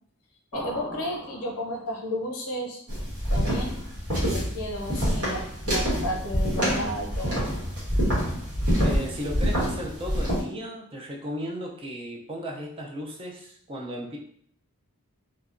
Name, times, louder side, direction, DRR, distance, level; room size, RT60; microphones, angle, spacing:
voice 1, 0.5-2.8 3.3-3.8 4.2-7.5, left 1 dB, 75° left, 1 dB, 0.7 m, -33 dB
sound 1, 0.5-2.2, right 1 dB, ahead, 0.8 m, -40 dB
sound 2, 2.9-10.4, equal, 75° right, 1.2 m, -26 dB
voice 2, 8.8-14.2, equal, 25° right, 0 dB, 0.3 m, -35 dB
2.8 x 2.2 x 2.4 m, 0.63 s
head